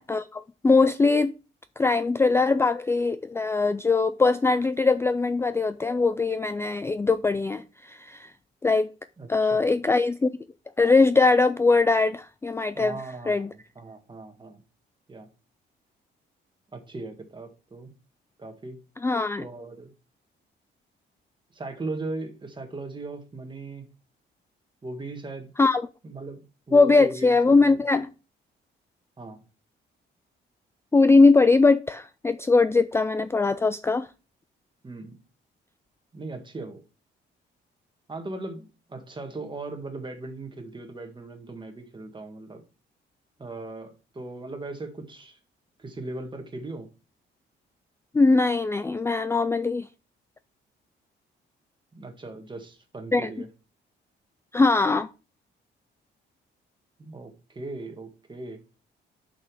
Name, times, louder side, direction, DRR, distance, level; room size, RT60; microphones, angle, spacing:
voice 1, 0.0-1.3 1.8-8.3 8.6-8.9 9.3-10.3 10.8-12.9 13.3-13.5 19.0-19.5 25.6-25.8 26.7-28.1 30.9-34.1 48.1-49.9 53.1-53.3 54.5-55.1, left 3 dB, 15° left, 0.4 m, -21 dB
voice 2, 9.2-9.7 12.7-14.6 15.1-15.3 16.7-17.9 18.4-18.8 19.4-19.9 21.5-23.9 24.8-25.5 26.0-27.8 29.2-29.4 34.8-35.1 36.1-36.8 38.1-42.6 43.4-45.4 45.8-46.9 51.9-53.5 57.0-58.6, right 2 dB, 25° right, 1.8 m, -38 dB
6.3 x 5.9 x 4.9 m
cardioid pair, 90°, 20 cm